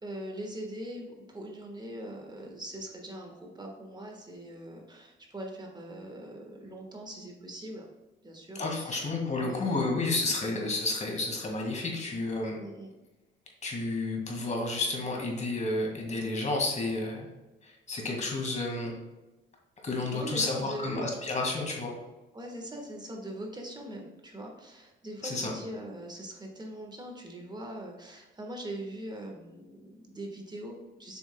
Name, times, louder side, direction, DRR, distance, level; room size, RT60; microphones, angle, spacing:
voice 1, 0.0-7.9 8.2-9.1 9.4-9.9 12.6-12.9 20.1-21.1 22.3-31.2, right 1 dB, 20° right, 1 dB, 1.3 m, -41 dB
voice 2, 8.5-12.6 13.6-17.3 17.6-18.9 19.8-21.9 25.2-25.5, left 2 dB, 35° left, 0 dB, 1.8 m, -31 dB
7.1 x 6.1 x 2.2 m, 1.1 s
cardioid pair, 90°, 20 cm